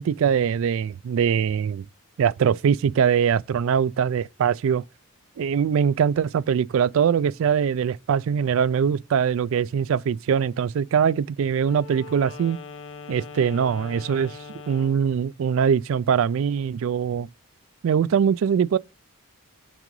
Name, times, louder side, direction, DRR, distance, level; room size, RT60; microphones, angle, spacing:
voice 1, 0.0-1.8 2.2-4.8 5.4-12.6 13.1-14.4 14.7-17.3 17.8-18.8, right 7 dB, 65° right, 0.3 m, -22 dB
Wind instrument woodwind instrument, 11.6-15.1, left 4 dB, 60° left, 0.7 m, -41 dB
6.0 x 3.8 x 5.3 m
head